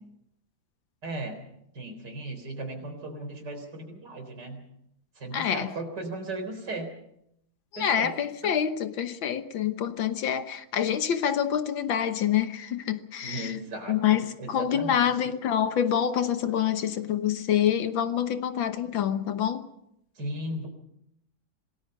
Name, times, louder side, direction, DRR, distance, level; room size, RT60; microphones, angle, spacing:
voice 1, 1.0-1.4 1.7-4.6 5.1-6.9 7.8-8.1 8.4-8.5 13.2-15.3 20.1-20.7, right 1 dB, 55° right, 4.5 m, -36 dB
voice 2, 5.3-5.7 7.7-13.5 13.9-14.2 14.5-19.7, left 9 dB, 75° left, 1.9 m, -26 dB
27.0 x 19.5 x 5.5 m
omnidirectional pair, 2.2 m